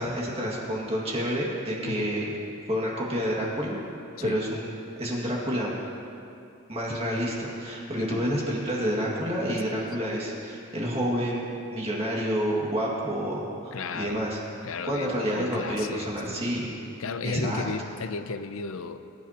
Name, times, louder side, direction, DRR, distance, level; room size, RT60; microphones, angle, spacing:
voice 1, 0.0-2.2 2.7-3.8 4.2-4.7 5.0-5.7 6.7-14.4 14.8-16.7 17.2-17.6, equal, 30° right, -4 dB, 2.0 m, -29 dB
voice 2, 13.7-14.2 14.6-16.5 17.0-19.0, left 4 dB, 70° left, 11 dB, 0.6 m, -34 dB
23.0 x 11.5 x 2.9 m, 2.6 s
head